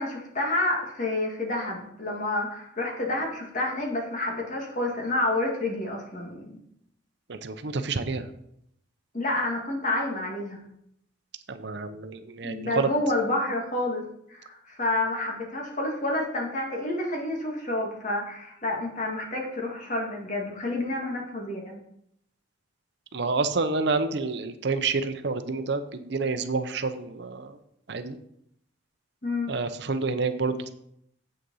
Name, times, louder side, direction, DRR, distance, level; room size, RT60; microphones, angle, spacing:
voice 1, 0.0-6.6 9.1-10.6 12.4-14.0 14.3-21.8 29.2-29.5, left 2 dB, 40° left, 0 dB, 2.2 m, -29 dB
voice 2, 7.3-8.3 11.5-12.9 23.1-27.6 27.9-28.2 29.5-30.7, right 4 dB, 60° right, 10 dB, 0.7 m, -28 dB
8.0 x 6.5 x 5.5 m, 0.74 s
head